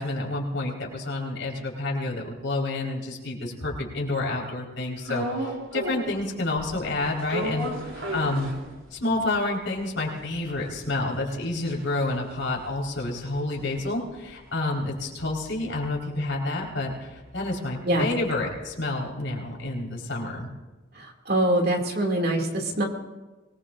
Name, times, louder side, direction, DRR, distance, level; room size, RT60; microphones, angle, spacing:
voice 1, 0.0-8.5 8.9-20.5, left 2 dB, 70° left, -2 dB, 4.5 m, -29 dB
sound 1, 5.0-6.2 6.6-9.1 9.5-9.6 9.8-14.3 14.6-18.7, right 1 dB, 85° right, 3.2 m, -36 dB
voice 2, 20.9-22.8, right 1 dB, 50° right, 1 dB, 2.5 m, -24 dB
24.0 x 20.0 x 2.6 m, 1.2 s
head